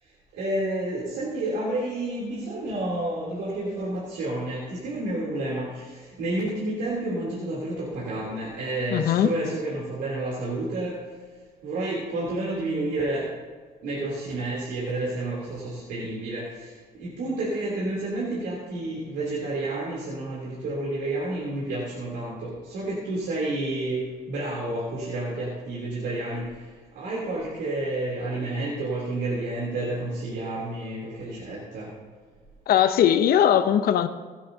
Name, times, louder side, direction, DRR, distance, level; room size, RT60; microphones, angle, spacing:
voice 1, 0.0-11.1 11.6-13.3 13.8-31.9, right 2 dB, 80° right, -5 dB, 3.4 m, -30 dB
voice 2, 8.9-9.3 32.7-34.1, left 10 dB, 65° left, 10 dB, 0.8 m, -19 dB
23.5 x 8.4 x 2.9 m, 1.5 s
cardioid pair, 110°, 17 cm